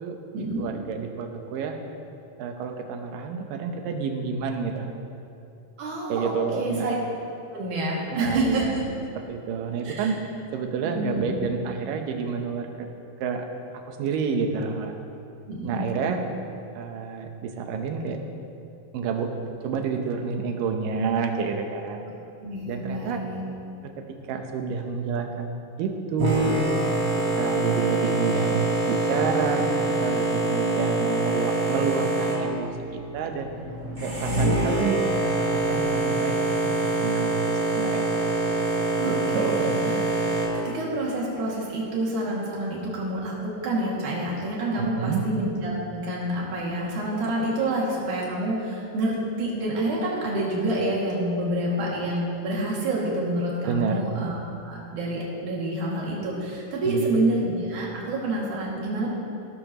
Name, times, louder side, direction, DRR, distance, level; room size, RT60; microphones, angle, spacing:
voice 1, 0.0-1.8 2.4-4.9 6.1-7.0 8.1-8.8 9.2-10.2 10.5-12.9 13.2-13.5 13.9-15.0 15.6-16.2 16.8-18.2 18.9-19.3 19.6-22.1 22.7-23.2 23.8-26.5 27.4-29.6 30.0-33.5 34.0-36.4 36.6-38.1 39.0-39.8 44.8-45.2 53.7-54.1 56.8-57.1, right 5 dB, 75° right, 4 dB, 2.5 m, -29 dB
voice 2, 5.8-6.9 7.5-8.8 9.8-10.1 10.8-11.4 15.5-16.1 22.4-23.4 34.3-34.5 39.0-39.5 39.9-40.0 40.5-59.1, right 1 dB, 60° right, -5 dB, 3.8 m, -28 dB
Boat Water vehicle, 26.2-40.5, right 2 dB, 25° right, 3.2 m, -25 dB
17.0 x 13.5 x 3.1 m, 2.6 s
omnidirectional pair, 4.2 m